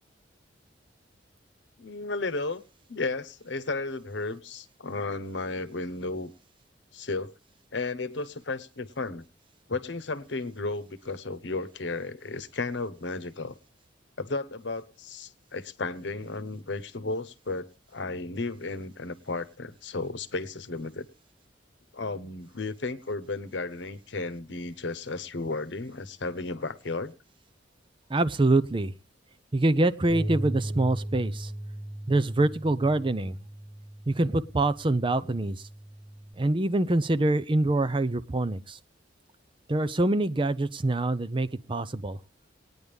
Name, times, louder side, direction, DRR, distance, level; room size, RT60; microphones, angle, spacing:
voice 1, 1.8-2.6 2.9-6.3 6.9-7.3 7.7-9.2 9.7-13.5 14.2-17.7 17.9-21.1 21.9-27.1 35.2-35.4, left 3 dB, 75° left, 12 dB, 1.0 m, -34 dB
voice 2, 28.1-28.9 29.5-31.5 32.1-33.4 34.1-35.6 36.4-38.8 39.7-42.2, right 2 dB, 30° right, 15 dB, 0.6 m, -25 dB
Bass guitar, 30.1-36.3, right 1 dB, 90° right, 2.3 m, -37 dB
20.0 x 9.6 x 3.5 m, 0.35 s
head